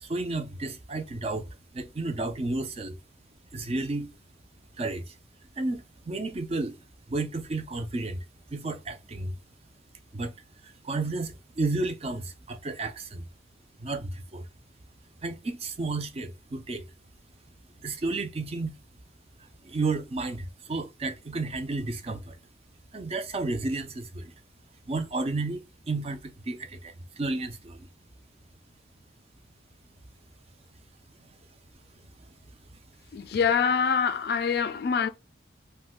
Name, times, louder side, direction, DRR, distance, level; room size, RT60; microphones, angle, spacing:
voice 1, 0.0-2.9 3.5-4.1 4.8-5.2 5.6-6.8 7.1-9.3 10.1-10.3 10.6-13.3 13.8-14.5 15.2-16.8 17.8-18.7 19.4-22.4 22.9-24.3 24.9-27.9 31.2-31.3 32.7-32.8, right 3 dB, 35° right, 0.4 m, -32 dB
voice 2, 33.1-35.1, left 6 dB, 55° left, 0.3 m, -25 dB
2.5 x 2.2 x 3.5 m
head